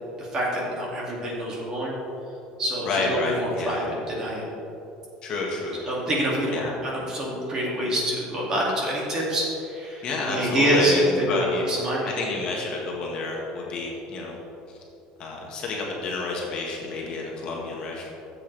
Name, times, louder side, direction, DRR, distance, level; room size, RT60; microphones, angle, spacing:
voice 1, 0.2-1.9 2.6-4.5 5.9-12.0, equal, 25° right, -4 dB, 2.4 m, -26 dB
voice 2, 2.8-3.9 5.2-5.8 6.5-6.8 10.0-11.7 12.0-14.4 14.7-14.8 15.2-18.1, left 3 dB, 35° left, -2 dB, 1.6 m, -29 dB
14.5 x 7.9 x 3.4 m, 2.9 s
cardioid pair, 165°, 2 cm